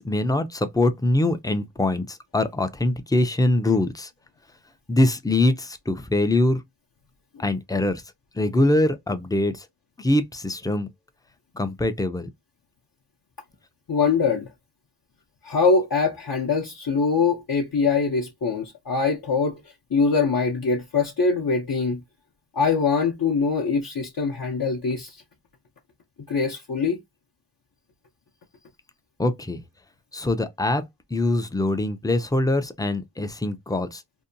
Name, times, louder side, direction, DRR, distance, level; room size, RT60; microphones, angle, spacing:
voice 1, 0.0-4.1 4.9-6.6 7.4-8.0 8.4-9.7 10.0-10.9 11.5-12.3 29.2-29.6 30.1-30.8 31.1-34.0, left 2 dB, 10° left, 0.4 m, -23 dB
voice 2, 13.9-14.5 15.4-19.6 19.9-22.0 22.5-25.2 26.3-27.0, left 4 dB, 55° left, 0.6 m, -23 dB
2.7 x 2.1 x 2.6 m
wide cardioid pair, 40°, 44 cm